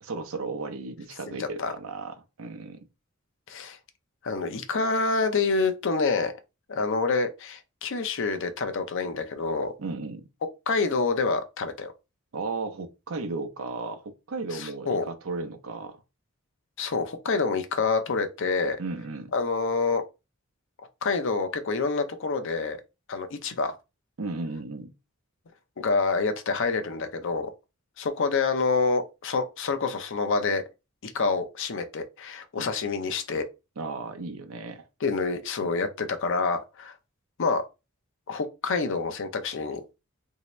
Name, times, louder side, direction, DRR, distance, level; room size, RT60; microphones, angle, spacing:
voice 1, 0.0-2.9 9.8-10.3 12.3-16.0 18.8-19.3 24.2-24.9 32.6-32.7 33.8-34.9 35.6-35.7, right 3 dB, 75° right, 0.6 m, -35 dB
voice 2, 1.3-1.7 3.5-3.8 4.2-6.3 6.7-9.7 10.7-11.9 14.5-15.1 16.8-18.8 19.3-20.0 21.0-22.8 23.1-23.7 25.8-27.5 28.0-30.6 31.0-33.4 35.0-36.9 37.4-37.6 38.3-39.8, left 4 dB, 60° left, 0.6 m, -27 dB
3.3 x 2.7 x 3.1 m
head